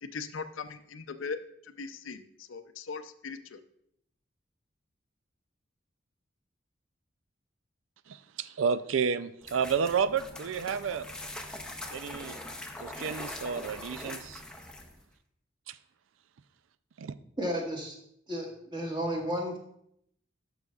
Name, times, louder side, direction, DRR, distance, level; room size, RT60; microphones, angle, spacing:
voice 1, 0.0-3.6, left 5 dB, 90° left, 10 dB, 0.6 m, -40 dB
voice 2, 8.1-11.1 11.9-12.4 12.8-14.4 15.7-15.8 17.0-17.1, right 6 dB, 90° right, 14 dB, 0.4 m, -31 dB
sound 1, 9.4-15.0, left 1 dB, 5° left, 0.6 m, -42 dB
voice 3, 17.4-17.9 18.3-19.6, equal, 25° right, -1 dB, 1.6 m, -32 dB
11.5 x 6.3 x 2.4 m, 0.72 s
head